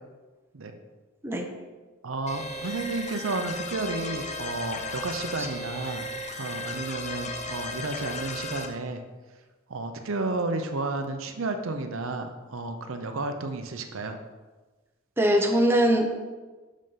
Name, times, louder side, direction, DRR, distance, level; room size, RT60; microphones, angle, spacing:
voice 1, 2.0-6.1 6.3-9.0 9.7-14.2, right 3 dB, 75° right, 6 dB, 0.7 m, -32 dB
sound 1, 2.3-8.7, left 1 dB, 35° left, 0.7 m, -35 dB
voice 2, 15.2-16.1, equal, 10° right, 2 dB, 0.8 m, -21 dB
6.3 x 5.4 x 5.6 m, 1.3 s
head